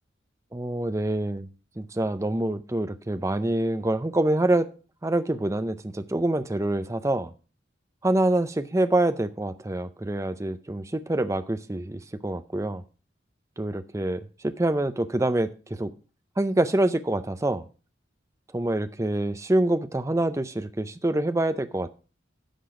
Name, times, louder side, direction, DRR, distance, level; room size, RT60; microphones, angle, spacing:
voice 1, 0.5-1.5 1.8-4.7 5.0-7.3 8.0-12.8 13.6-15.9 16.4-17.6 18.5-21.9, right 1 dB, 15° right, 0.5 m, -26 dB
10.5 x 6.1 x 4.8 m
head